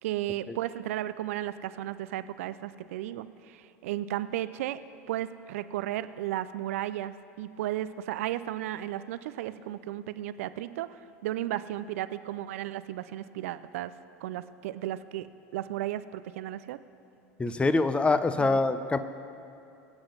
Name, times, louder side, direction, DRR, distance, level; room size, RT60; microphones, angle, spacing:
voice 1, 0.0-4.8 5.1-13.9 14.2-15.3 15.5-16.8 18.4-18.6, right 13 dB, 70° right, 14 dB, 0.5 m, -34 dB
voice 2, 17.4-19.0, left 3 dB, 15° left, 12 dB, 0.7 m, -24 dB
22.0 x 8.8 x 5.4 m, 2.8 s
hypercardioid pair, 85°, 8 cm